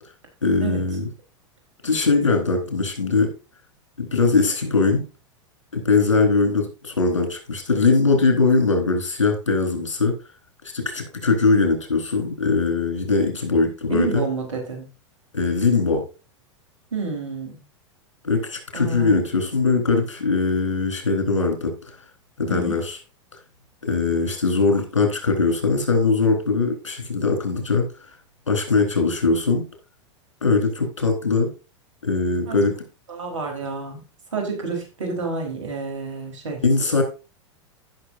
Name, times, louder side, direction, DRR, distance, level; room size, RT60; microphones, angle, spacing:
voice 1, 0.4-1.1 1.8-3.3 4.0-5.0 5.7-10.1 10.7-14.2 15.3-16.0 18.2-21.7 22.4-23.0 23.8-27.9 28.5-29.6 30.4-31.5 32.0-32.7 36.6-37.0, left 4 dB, 90° left, 4 dB, 4.2 m, -21 dB
voice 2, 13.6-14.9 16.9-17.6 18.7-19.2 22.5-22.8 32.5-32.6 33.1-34.0 34.3-36.6, right 4 dB, 80° right, 3 dB, 4.3 m, -29 dB
15.0 x 6.8 x 2.7 m, 0.32 s
hypercardioid pair, 100°, 16 cm